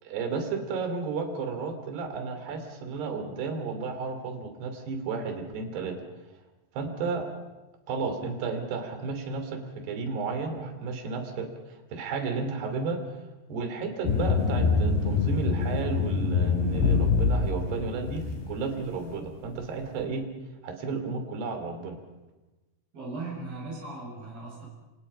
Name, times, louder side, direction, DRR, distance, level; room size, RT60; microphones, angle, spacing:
voice 1, 0.0-6.0 6.7-7.3 7.9-13.0 13.5-20.3 20.6-22.0, right 4 dB, 80° right, 6 dB, 5.0 m, -33 dB
sound 1, 14.1-18.6, left 5 dB, 90° left, 4.7 m, -25 dB
voice 2, 22.9-24.7, right 3 dB, 60° right, -3 dB, 9.0 m, -38 dB
28.0 x 26.5 x 5.6 m, 1.1 s
omnidirectional pair, 4.7 m